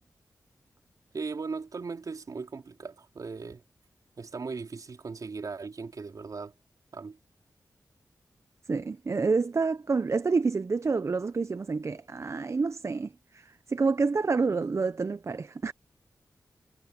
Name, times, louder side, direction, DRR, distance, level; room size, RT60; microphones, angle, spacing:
voice 1, 1.1-3.6 4.2-6.5 6.9-7.2, right 4 dB, 60° right, 4.5 m, -38 dB
voice 2, 8.7-15.7, right 4 dB, 45° right, 0.6 m, -28 dB
cardioid pair, 60°, 7 cm